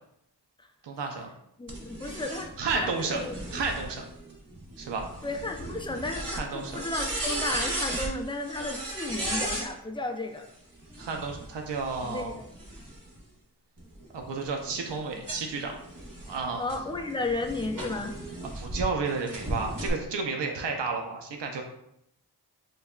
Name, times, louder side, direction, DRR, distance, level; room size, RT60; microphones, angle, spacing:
voice 1, 0.8-1.3 2.6-3.2 3.5-4.0 4.8-5.2 6.3-6.8 11.0-12.3 14.1-15.8 16.3-16.7 18.5-21.6, right 4 dB, 80° right, 2 dB, 0.6 m, -32 dB
voice 2, 1.6-3.3 5.2-10.4 12.0-12.4 16.6-18.2, left 2 dB, 10° left, 4 dB, 0.5 m, -33 dB
sound 1, 1.7-9.7 10.8-13.2 13.8-18.8 19.3-19.9, right 1 dB, 50° right, 1.2 m, -36 dB
6.5 x 2.2 x 2.4 m, 0.77 s
wide cardioid pair, 55°, 41 cm